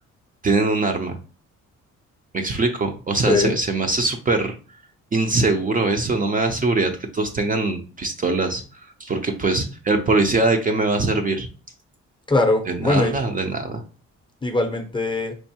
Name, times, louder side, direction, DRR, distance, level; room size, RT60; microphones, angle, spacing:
voice 1, 0.4-1.2 2.3-4.5 5.1-8.6 9.0-11.5 12.7-13.8, right 3 dB, 30° right, 4 dB, 0.5 m, -22 dB
voice 2, 12.3-13.2 14.4-15.4, left 2 dB, 15° left, 5 dB, 0.7 m, -21 dB
4.5 x 2.5 x 2.8 m, 0.36 s
cardioid pair, 90°, 30 cm